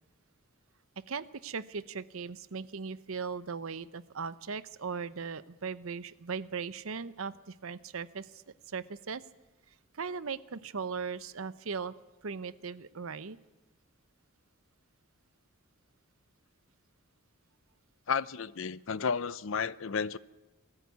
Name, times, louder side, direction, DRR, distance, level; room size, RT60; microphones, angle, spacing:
voice 1, 1.1-9.2 9.9-11.9 12.2-13.4, right 5 dB, 75° right, 16 dB, 0.8 m, -38 dB
voice 2, 18.1-20.2, left 6 dB, 65° left, 19 dB, 0.6 m, -32 dB
20.0 x 14.0 x 9.5 m, 1.1 s
head